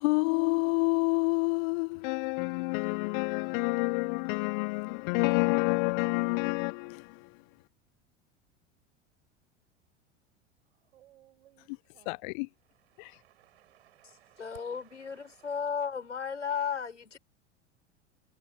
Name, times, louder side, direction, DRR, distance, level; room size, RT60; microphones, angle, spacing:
voice 1, 0.0-7.0 12.1-12.5, left 30 dB, 45° left, 0.4 m, -28 dB
voice 2, 10.9-12.2 12.6-15.6, right 13 dB, 65° right, 7.5 m, -61 dB
voice 3, 14.4-17.2, left 7 dB, 85° left, 4.4 m, -34 dB
figure-of-eight pair, 80°, 34 cm